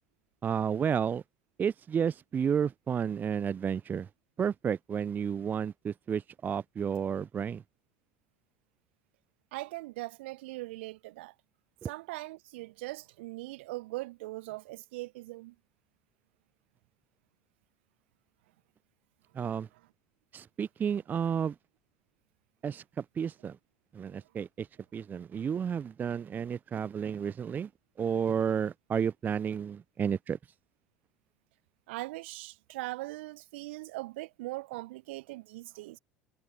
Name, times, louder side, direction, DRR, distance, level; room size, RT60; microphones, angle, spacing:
voice 1, 0.4-1.2 1.6-4.1 4.4-7.6 11.8-11.9 19.4-19.7 20.3-21.5 22.6-23.6 23.9-24.7 24.9-27.7 28.0-30.4, right 7 dB, 25° right, 0.4 m, -31 dB
voice 2, 9.5-11.3 11.8-15.5 31.9-36.0, right 20 dB, 65° right, 1.0 m, -40 dB
figure-of-eight pair, 70°, 7 cm